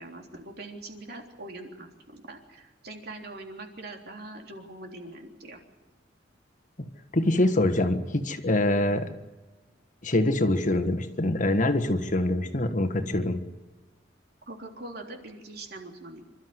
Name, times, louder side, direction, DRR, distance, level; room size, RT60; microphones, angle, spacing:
voice 1, 0.0-5.6 14.5-16.2, right 2 dB, 55° right, 3 dB, 3.5 m, -42 dB
voice 2, 7.1-9.1 10.0-13.4, left 1 dB, 45° left, 8 dB, 1.5 m, -24 dB
27.0 x 13.0 x 9.5 m, 1.2 s
head